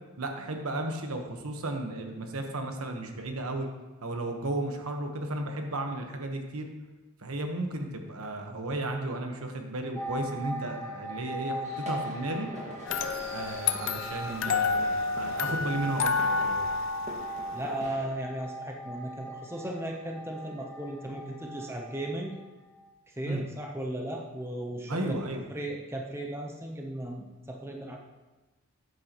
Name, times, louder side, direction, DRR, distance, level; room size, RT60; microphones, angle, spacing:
voice 1, 0.2-3.7 4.0-6.7 7.2-12.5 13.3-16.6 23.3-23.4 24.9-25.4, right 2 dB, 75° right, 4 dB, 1.2 m, -34 dB
sound 1, 10.0-22.4 22.7-22.9, equal, 15° left, 1.7 m, -40 dB
sound 2, 11.6-18.1, equal, 30° right, 1.8 m, -43 dB
sound 3, 12.9-17.9, left 4 dB, 60° left, 0.5 m, -30 dB
voice 2, 17.5-22.3 23.1-25.2 25.5-28.0, right 1 dB, 10° right, 1 dB, 0.7 m, -36 dB
13.0 x 9.4 x 3.0 m, 1.2 s
head